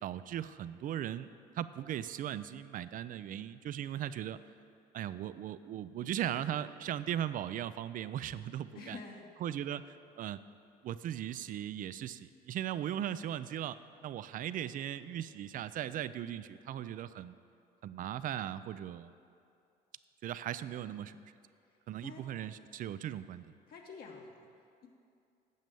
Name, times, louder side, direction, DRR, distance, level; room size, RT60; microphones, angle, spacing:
voice 1, 0.0-1.3 1.6-4.4 4.9-9.0 9.4-10.4 10.8-17.4 17.8-19.1 20.2-21.2 21.9-23.4, right 11 dB, 55° right, 14 dB, 0.4 m, -38 dB
voice 2, 8.7-9.3 21.7-22.6 23.7-24.9, left 4 dB, 65° left, 0 dB, 1.2 m, -50 dB
9.3 x 7.4 x 6.9 m, 2.5 s
cardioid pair, 110°, 17 cm